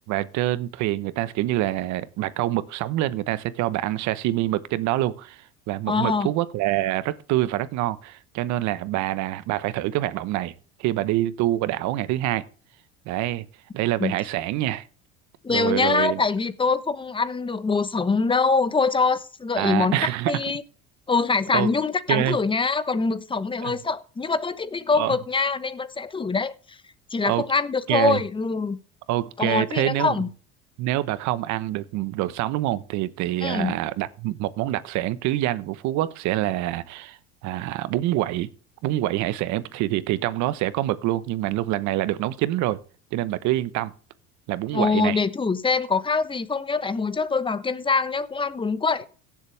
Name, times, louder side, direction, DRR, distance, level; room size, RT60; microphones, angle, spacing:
voice 1, 0.1-10.5 10.8-12.5 13.1-13.5 13.7-14.9 15.5-16.2 19.6-20.3 21.5-21.7 22.1-22.4 23.6-23.7 24.9-25.2 27.2-27.4 27.9-28.2 29.1-30.2 30.8-38.5 38.8-42.8 43.1-43.9 44.5-45.2, right 15 dB, 60° right, 1.1 m, -26 dB
voice 2, 5.9-6.3 14.0-14.1 15.4-20.6 21.1-26.8 27.1-28.8 29.4-30.3 33.4-33.7 44.7-49.1, left 4 dB, 15° left, 1.1 m, -24 dB
16.5 x 7.6 x 3.4 m
supercardioid pair, 100°, 32 cm